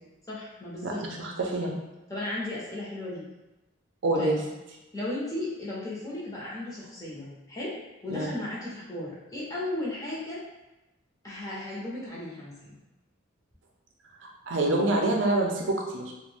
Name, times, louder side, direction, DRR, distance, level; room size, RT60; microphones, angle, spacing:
voice 1, 0.3-1.0 2.1-3.2 4.2-4.4 4.9-7.8 8.0-10.4 11.2-12.7, left 1 dB, 15° left, -7 dB, 0.6 m, -35 dB
voice 2, 0.8-1.7 4.0-4.4 8.1-8.3 14.2-16.1, right 2 dB, 65° right, 0 dB, 0.5 m, -26 dB
2.5 x 2.1 x 3.3 m, 1.0 s
head